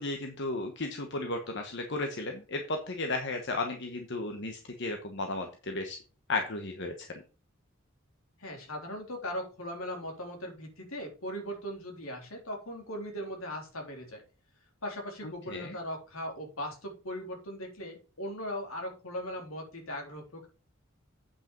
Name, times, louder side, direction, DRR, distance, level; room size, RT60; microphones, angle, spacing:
voice 1, 0.0-6.0 6.3-7.1 15.5-15.8, left 2 dB, 55° left, 5 dB, 1.2 m, -34 dB
voice 2, 8.4-14.2 14.8-20.5, equal, 75° left, 2 dB, 3.4 m, -39 dB
8.5 x 5.9 x 5.3 m, 0.35 s
head